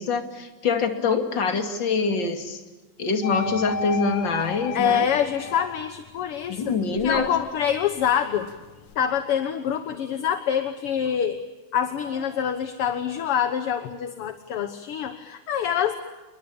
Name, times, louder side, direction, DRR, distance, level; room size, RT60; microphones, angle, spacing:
voice 1, 0.0-2.6 3.0-5.1 6.5-7.3, left 4 dB, 40° left, 5 dB, 2.9 m, -25 dB
sound 1, 3.2-6.1 6.6-9.0, left 5 dB, 85° left, 2.6 m, -34 dB
voice 2, 4.7-6.8 7.0-8.5 9.0-11.4 11.7-15.9, left 8 dB, 60° left, 8 dB, 1.8 m, -25 dB
28.5 x 22.0 x 8.7 m, 1.2 s
omnidirectional pair, 3.4 m